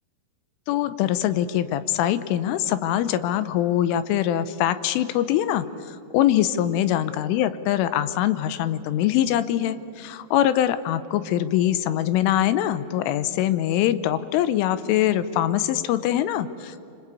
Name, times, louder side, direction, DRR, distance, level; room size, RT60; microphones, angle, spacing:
voice 1, 0.7-16.8, left 12 dB, 85° left, 13 dB, 3.3 m, -23 dB
26.0 x 25.5 x 8.5 m, 2.9 s
omnidirectional pair, 5.7 m